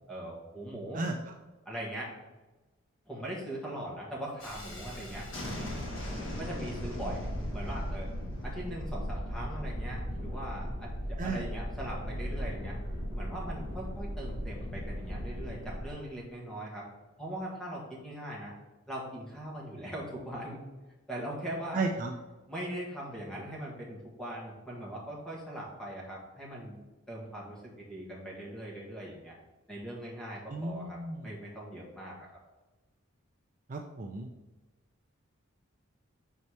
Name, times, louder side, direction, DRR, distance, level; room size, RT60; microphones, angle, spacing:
voice 1, 0.1-1.0 1.6-2.1 3.1-5.3 6.4-8.1 8.4-12.8 13.1-16.8 17.2-18.5 18.9-20.6 21.1-21.8 22.5-26.8 27.1-29.4 29.7-31.0 31.2-32.3, right 1 dB, 5° left, -4 dB, 1.5 m, -40 dB
Thunderstorm, 4.4-15.9, equal, 60° left, 1.5 m, -37 dB
voice 2, 21.7-22.1 30.5-31.3 33.7-34.3, right 3 dB, 40° right, 2 dB, 0.5 m, -34 dB
4.7 x 4.2 x 5.5 m, 1.1 s
head